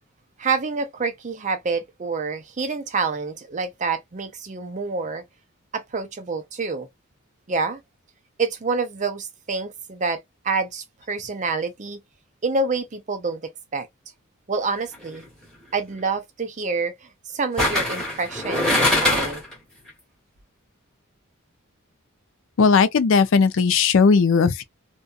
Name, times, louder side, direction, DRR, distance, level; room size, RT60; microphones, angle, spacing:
voice 1, 0.4-5.2 5.7-6.9 7.5-7.8 8.4-12.0 12.4-13.9 14.5-15.2 15.7-16.9 17.3-19.4, right 4 dB, 35° right, 0.5 m, -27 dB
sound 1, 14.9-15.2 17.6-19.5 19.9-20.0, left 1 dB, 5° left, 1.1 m, -22 dB
voice 2, 22.6-24.6, left 5 dB, 60° left, 0.4 m, -17 dB
2.6 x 2.2 x 2.3 m
head